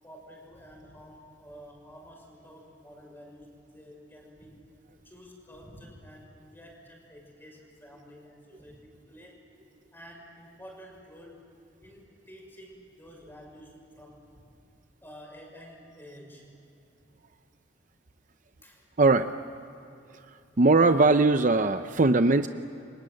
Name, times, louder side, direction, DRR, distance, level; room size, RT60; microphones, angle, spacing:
voice 1, 0.0-4.6 5.0-9.4 9.9-11.4 11.8-14.2 15.0-16.5 18.6-18.9, equal, 10° left, 0 dB, 6.4 m, -50 dB
voice 2, 19.0-19.3 20.6-22.5, right 3 dB, 45° right, 9 dB, 0.7 m, -20 dB
28.5 x 24.5 x 7.9 m, 2.8 s
head